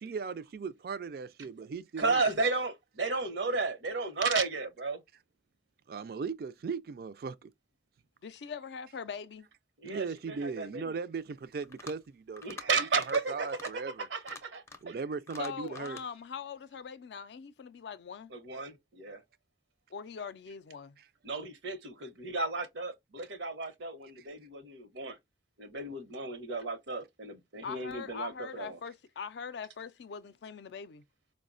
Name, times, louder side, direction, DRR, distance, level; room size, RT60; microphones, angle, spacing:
voice 1, 0.0-2.2 5.9-7.5 9.8-12.4 12.7-14.1 14.8-16.0 21.0-21.1, right 5 dB, 55° right, 0.3 m, -38 dB
voice 2, 2.0-5.0 9.8-11.0 12.4-15.0 18.3-19.2 21.2-25.2 25.6-28.8, right 4 dB, 85° right, 0.8 m, -34 dB
voice 3, 8.2-9.5 15.4-18.3 19.9-21.0 27.6-31.0, left 6 dB, 70° left, 0.4 m, -42 dB
sound 1, 11.6-12.1 12.4-12.7 13.0-13.2 13.5-13.7 14.2-14.9 15.3-16.1, left 4 dB, 15° left, 0.5 m, -47 dB
4.7 x 2.1 x 2.4 m
head